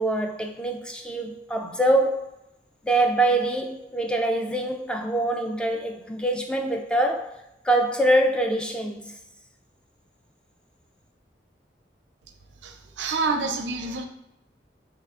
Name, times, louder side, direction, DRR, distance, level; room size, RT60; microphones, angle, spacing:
voice 1, 0.0-2.2 2.8-7.3 7.6-9.1, right 1 dB, 5° left, 0.3 m, -24 dB
voice 2, 12.6-14.1, right 3 dB, 90° right, 0.5 m, -28 dB
5.6 x 3.4 x 2.4 m
head